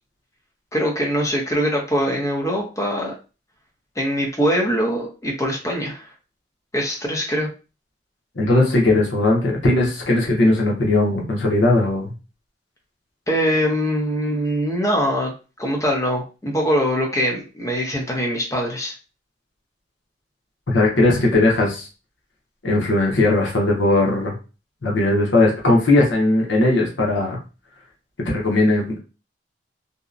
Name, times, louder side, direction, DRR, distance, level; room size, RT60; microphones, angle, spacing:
voice 1, 0.7-3.1 4.0-6.0 6.7-7.5 13.3-15.3 15.6-18.9, equal, 15° left, 0 dB, 0.6 m, -22 dB
voice 2, 8.4-12.1 20.7-21.9 22.6-24.3 24.8-27.4 28.2-29.0, left 2 dB, 80° left, -1 dB, 0.8 m, -18 dB
2.7 x 2.1 x 2.4 m, 0.32 s
head